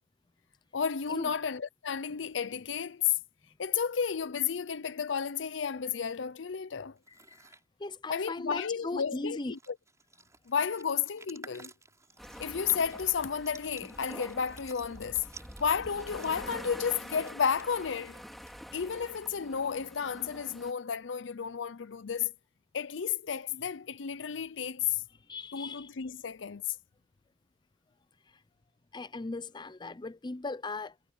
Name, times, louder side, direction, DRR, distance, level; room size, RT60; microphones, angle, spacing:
voice 1, 0.7-3.2 3.6-7.0 8.1-9.8 10.5-11.7 12.4-15.2 15.6-18.2 18.7-22.3 22.7-25.0 25.5-26.6, left 7 dB, 80° left, 0.6 m, -32 dB
sound 1, 7.0-7.6 9.1-9.2 9.4-18.9, right 3 dB, 15° right, 7.0 m, -54 dB
voice 2, 7.8-9.6 25.3-25.9 28.9-30.9, left 3 dB, 25° left, 0.6 m, -38 dB
sound 2, 12.2-20.7, equal, ahead, 4.2 m, -46 dB
head